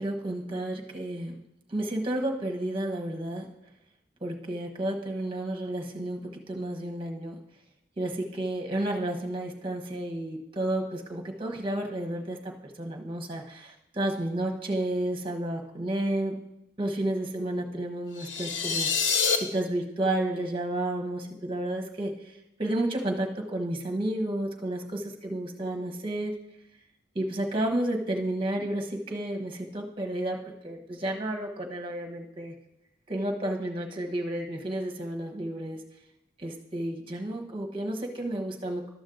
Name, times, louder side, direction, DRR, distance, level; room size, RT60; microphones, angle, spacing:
voice 1, 0.0-1.4 1.7-3.5 4.2-7.3 8.0-16.4 16.8-22.1 22.6-26.3 27.1-32.5 33.1-35.8 36.4-38.9, right 1 dB, 30° right, 2 dB, 1.1 m, -31 dB
sound 1, 18.2-19.4, left 5 dB, 75° left, 0.8 m, -26 dB
12.5 x 6.2 x 3.9 m, 0.87 s
head